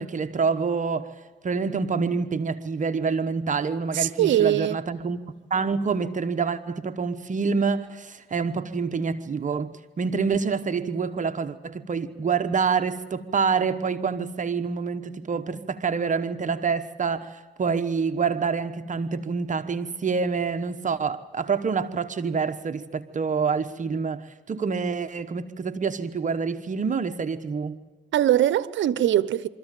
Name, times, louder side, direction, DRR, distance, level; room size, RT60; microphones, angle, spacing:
voice 1, 0.0-5.2 5.5-27.8, right 5 dB, 40° right, 1.1 m, -27 dB
voice 2, 3.9-4.8 28.1-29.5, right 12 dB, 70° right, 0.9 m, -21 dB
24.5 x 14.0 x 9.1 m
cardioid pair, 90°, 20 cm